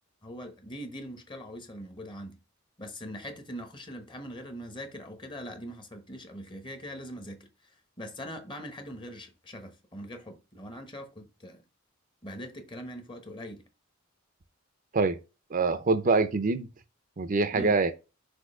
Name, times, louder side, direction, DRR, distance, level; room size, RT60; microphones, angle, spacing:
voice 1, 0.2-2.4 2.8-7.5 8.0-11.6 12.2-13.6 17.5-17.8, equal, 25° left, 1.1 m, -42 dB
voice 2, 15.5-16.7 17.2-17.9, right 3 dB, 40° right, 0.6 m, -25 dB
6.3 x 2.8 x 5.4 m
head